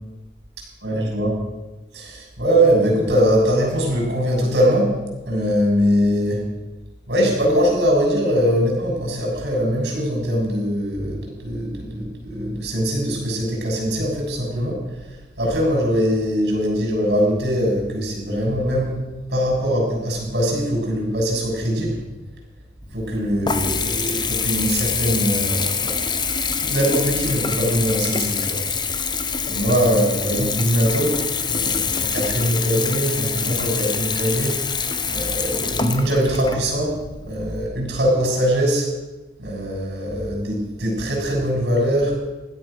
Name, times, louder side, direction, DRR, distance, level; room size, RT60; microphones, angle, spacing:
voice 1, 0.8-1.3 1.9-4.9 5.3-6.4 7.1-14.8 15.4-18.9 19.3-22.0 22.9-26.0 26.6-28.6 29.4-31.2 31.5-34.5 35.1-38.9 39.4-42.2, equal, 70° right, -1 dB, 7.1 m, -21 dB
Water tap faucet / Bathtub (filling or washing) / Trickle dribble, 22.8-37.7, left 5 dB, 25° left, 1.1 m, -25 dB
16.5 x 12.0 x 6.6 m, 1.1 s
head